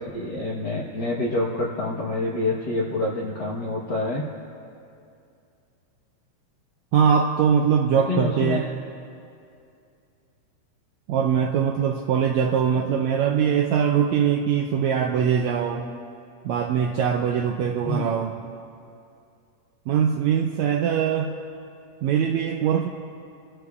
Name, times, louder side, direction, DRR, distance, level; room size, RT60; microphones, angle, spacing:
voice 1, 0.0-4.3 8.1-8.7 12.7-12.8 17.8-18.1, left 2 dB, 70° left, -6 dB, 0.9 m, -27 dB
voice 2, 6.9-8.7 11.1-15.9 16.4-18.4 19.9-21.4 22.0-22.9, right 7 dB, 85° right, 3 dB, 1.6 m, -22 dB
25.0 x 15.0 x 2.4 m, 2.5 s
omnidirectional pair, 3.8 m